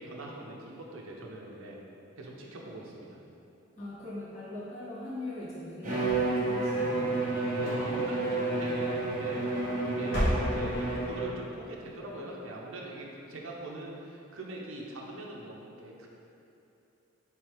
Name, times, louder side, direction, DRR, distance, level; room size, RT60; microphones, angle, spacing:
voice 1, 0.0-1.8 2.2-3.2 7.6-9.4 9.8-10.3 10.5-16.1, right 1 dB, 75° right, -2 dB, 0.6 m, -42 dB
voice 2, 3.8-7.2, left 1 dB, 35° left, -12 dB, 1.5 m, -41 dB
Bowed string instrument, 5.8-11.5, right 2 dB, 35° right, 0.7 m, -30 dB
sound 1, 6.0-7.1 7.6-8.2 9.2-9.7 10.0-11.0, equal, 60° left, 1.1 m, -33 dB
3.2 x 3.2 x 4.7 m, 2.8 s
head